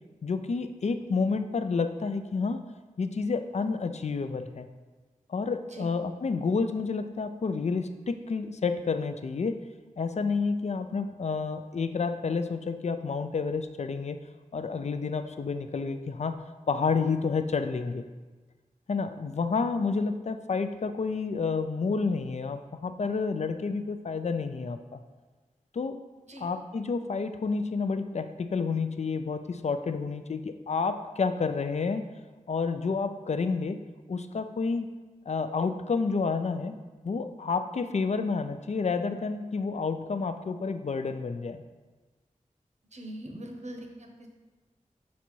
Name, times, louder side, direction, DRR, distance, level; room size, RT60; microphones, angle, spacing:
voice 1, 0.2-2.6 3.0-4.7 5.3-9.6 10.0-14.2 14.5-16.4 16.7-18.0 18.9-25.0 25.7-26.0 26.4-32.0 32.5-33.8 34.1-34.9 35.3-36.8 37.0-41.6, left 4 dB, 55° left, 9 dB, 0.4 m, -29 dB
voice 2, 42.9-44.3, right 1 dB, 55° right, 3 dB, 0.9 m, -42 dB
6.0 x 4.1 x 4.5 m, 1.3 s
wide cardioid pair, 65°, 14 cm